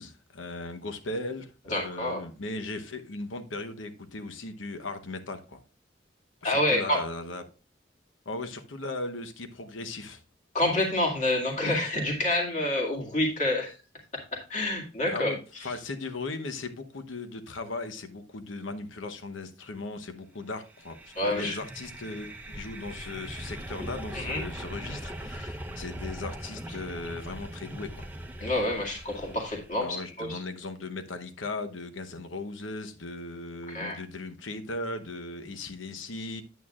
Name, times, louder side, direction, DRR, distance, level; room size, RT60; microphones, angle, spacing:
voice 1, 0.0-5.6 6.4-7.4 8.3-10.2 15.1-28.1 29.8-36.4, left 2 dB, 90° left, 0.9 m, -37 dB
voice 2, 1.7-2.2 6.4-7.0 10.5-13.7 14.1-15.3 15.6-15.7 21.2-21.6 24.1-24.4 28.4-30.4 33.7-34.0, left 1 dB, 40° left, 2.0 m, -28 dB
sound 1, 20.7-29.9, right 1 dB, 10° right, 0.7 m, -40 dB
9.1 x 8.6 x 2.4 m
head